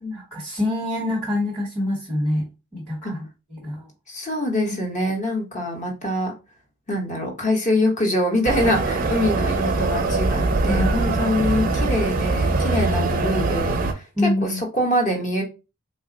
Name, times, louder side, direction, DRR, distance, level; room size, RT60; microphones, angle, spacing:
voice 1, 0.1-2.4 2.7-3.3 3.5-3.9 10.6-10.9 11.3-12.0 13.0-13.1 14.2-14.6, left 1 dB, 5° left, -4 dB, 1.0 m, -26 dB
voice 2, 4.1-6.3 6.9-14.1 14.4-15.4, left 1 dB, 30° left, 2 dB, 0.8 m, -24 dB
sound 1, 8.4-13.9, right 3 dB, 40° right, 0.4 m, -22 dB
3.2 x 2.1 x 3.8 m, 0.30 s
head